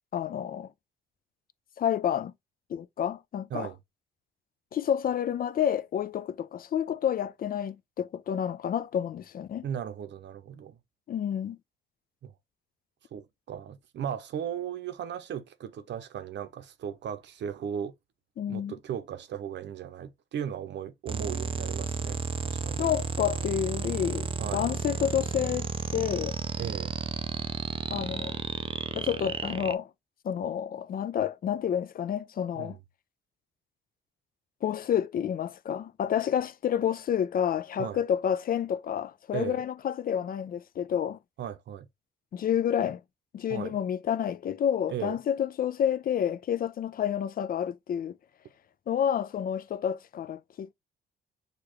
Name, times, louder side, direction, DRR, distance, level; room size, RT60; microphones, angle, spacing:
voice 1, 0.1-0.7 1.8-2.3 2.7-3.7 4.7-9.6 11.1-11.6 18.4-18.7 22.8-26.4 27.9-28.4 28.9-29.9 30.2-32.8 34.6-41.2 42.3-43.0 43.3-48.2 48.9-50.7, left 9 dB, 45° left, 0.4 m, -29 dB
voice 2, 9.6-10.8 12.2-12.3 13.1-17.9 18.5-22.8 24.4-24.7 26.6-26.9 32.5-32.8 37.8-38.0 39.3-39.6 41.4-41.9 43.5-43.8 44.9-45.2, right 9 dB, 65° right, 0.7 m, -37 dB
sound 1, 21.1-29.7, right 5 dB, 25° right, 0.4 m, -33 dB
6.6 x 2.4 x 3.0 m
cardioid pair, 90°, 20 cm